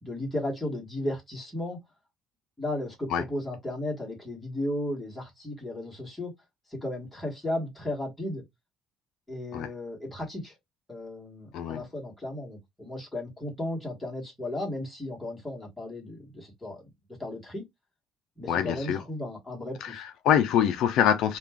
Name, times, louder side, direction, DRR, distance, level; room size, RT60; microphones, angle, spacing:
voice 1, 0.0-1.8 2.6-6.3 6.7-8.4 9.3-10.6 10.9-16.9 17.2-17.6 18.4-20.0, left 1 dB, 5° left, 1.2 m, -35 dB
voice 2, 18.5-19.0 19.8-21.4, left 9 dB, 60° left, 0.3 m, -25 dB
2.4 x 2.2 x 3.2 m
cardioid pair, 165°, 0 cm